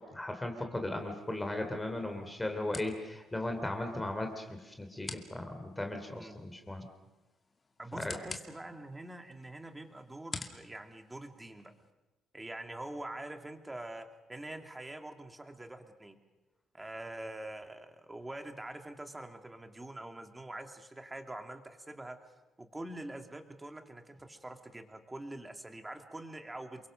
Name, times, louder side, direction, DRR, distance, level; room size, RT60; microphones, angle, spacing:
voice 1, 0.0-6.9 8.0-8.1, left 1 dB, 10° left, 4 dB, 3.0 m, -37 dB
sound 1, 0.9-11.9, left 4 dB, 30° left, 2.4 m, -50 dB
voice 2, 7.8-11.7 12.3-16.2 16.7-22.2 22.6-26.9, right 1 dB, 10° right, 6 dB, 2.7 m, -45 dB
28.5 x 23.0 x 6.5 m, 1.1 s
cardioid pair, 115°, 0 cm